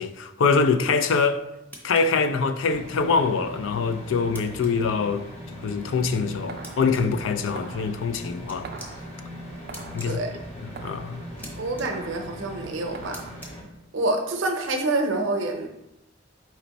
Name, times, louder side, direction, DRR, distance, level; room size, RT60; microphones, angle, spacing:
voice 1, 0.0-1.4 1.8-5.3 5.6-8.7 9.9-10.2 10.8-11.2, left 5 dB, 85° left, 0.4 m, -24 dB
sound 1, 1.7-2.0 4.3-4.7 6.6-7.0 8.5-8.9 9.7-10.1 11.4-11.5 11.8-11.9 13.1-13.5, equal, 10° left, 0.8 m, -41 dB
sound 2, 2.6-13.6, equal, 30° left, 1.1 m, -40 dB
sound 3, 5.9-13.3, right 4 dB, 55° right, 0.4 m, -44 dB
voice 2, 11.6-13.2 13.9-15.7, right 2 dB, 85° right, 0.7 m, -27 dB
4.3 x 3.0 x 4.0 m
head